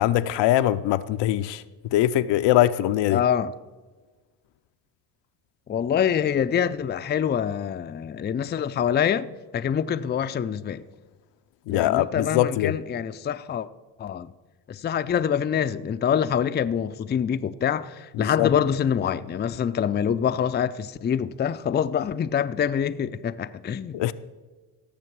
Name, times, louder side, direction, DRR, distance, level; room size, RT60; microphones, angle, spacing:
voice 1, 0.0-1.6 1.9-3.2 11.7-12.7 18.2-18.5 23.9-24.1, left 14 dB, 75° left, 0.6 m, -22 dB
voice 2, 3.1-3.5 5.7-9.3 9.5-10.8 11.7-13.7 14.0-14.3 14.7-24.0, left 8 dB, 25° left, 0.4 m, -25 dB
17.0 x 6.7 x 4.7 m
supercardioid pair, 80°, 44 cm